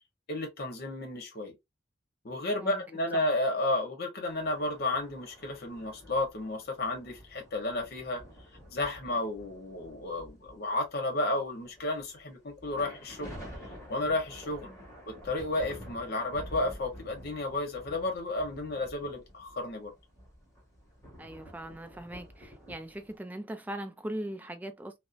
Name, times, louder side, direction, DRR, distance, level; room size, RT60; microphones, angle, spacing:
voice 1, 0.3-1.5 2.2-8.2 8.7-13.3 13.9-14.7 15.1-19.9, left 2 dB, 55° left, 0.9 m, -32 dB
sound 1, 4.2-10.9 11.5-23.2, equal, 15° left, 1.4 m, -49 dB
voice 2, 21.2-25.0, right 1 dB, 10° right, 0.3 m, -40 dB
2.6 x 2.0 x 2.4 m
head